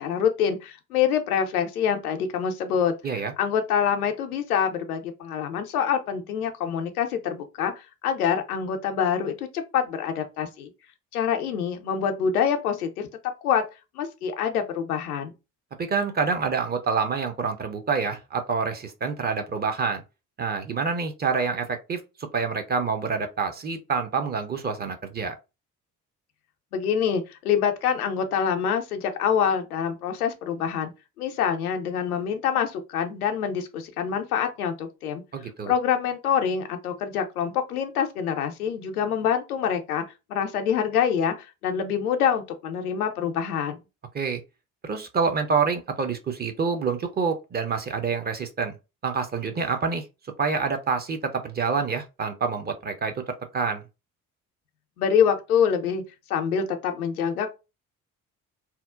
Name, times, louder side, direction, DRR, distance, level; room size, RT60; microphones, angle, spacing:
voice 1, 0.0-2.9 3.4-10.7 11.1-13.1 13.4-13.6 13.9-15.3 26.7-30.9 31.2-35.2 35.7-40.0 40.3-43.8 55.0-56.0 56.3-57.5, left 8 dB, 80° left, 0.5 m, -25 dB
voice 2, 15.8-20.0 20.4-25.3 35.3-35.7 44.1-44.4 44.8-48.7 49.0-50.0 50.4-53.2 53.5-53.8, right 5 dB, 25° right, 0.4 m, -27 dB
2.7 x 2.0 x 2.3 m
figure-of-eight pair, 45°, 44 cm